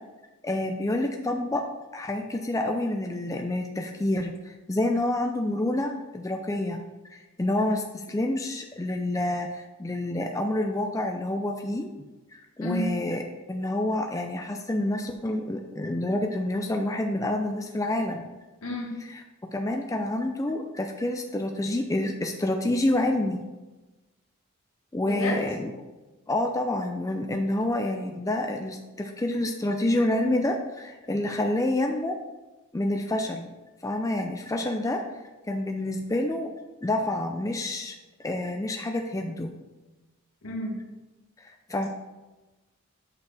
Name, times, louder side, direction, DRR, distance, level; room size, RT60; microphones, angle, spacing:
voice 1, 0.4-1.6 1.9-6.8 7.1-11.9 12.3-13.2 13.5-18.2 19.5-23.4 24.9-25.7 26.3-32.1 32.7-33.5 33.8-35.0 35.5-36.5 36.8-37.9 38.2-39.5 41.4-41.9, left 1 dB, 15° left, 3 dB, 0.4 m, -28 dB
voice 2, 18.6-18.9 25.1-25.4 40.4-40.8, left 1 dB, 85° left, -1 dB, 1.7 m, -31 dB
8.2 x 6.2 x 3.4 m, 1.1 s
head